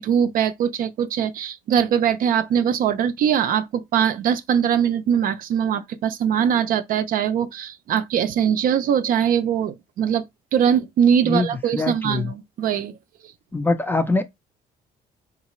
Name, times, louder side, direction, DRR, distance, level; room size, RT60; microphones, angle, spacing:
voice 1, 0.0-10.3 10.5-12.9, right 8 dB, 55° right, 0.4 m, -21 dB
voice 2, 11.2-12.3 13.5-14.2, left 3 dB, 10° left, 0.4 m, -23 dB
3.9 x 2.4 x 3.0 m
cardioid pair, 110°, 17 cm